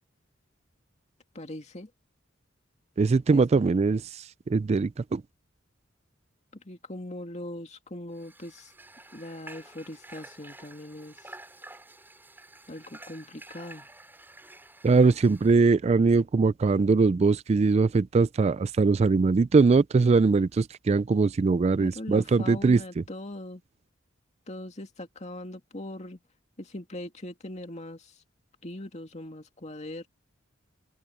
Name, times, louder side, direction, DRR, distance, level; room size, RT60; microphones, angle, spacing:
voice 1, 1.3-1.9 3.3-3.4 6.6-8.7 9.1-11.2 12.7-13.9 21.8-23.6 24.5-26.2 26.6-28.1 28.6-30.1, left 1 dB, 35° left, 2.3 m, -40 dB
voice 2, 3.0-5.2 14.8-23.0, right 4 dB, 35° right, 0.3 m, -22 dB
Water / Water tap faucet, 8.1-15.7, right 2 dB, 10° right, 6.0 m, -50 dB
open air
head